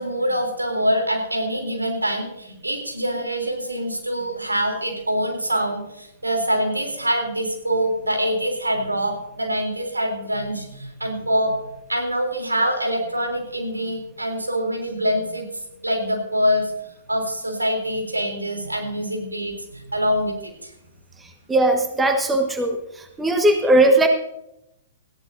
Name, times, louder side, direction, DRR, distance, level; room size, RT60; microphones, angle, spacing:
voice 1, 0.0-11.6 11.9-15.5 15.8-16.7 17.1-20.7, equal, 85° right, 3 dB, 3.4 m, -24 dB
voice 2, 21.5-22.8 23.2-24.1, right 1 dB, 10° right, 5 dB, 1.5 m, -18 dB
19.0 x 15.0 x 2.7 m, 0.82 s
figure-of-eight pair, 110°, 0 cm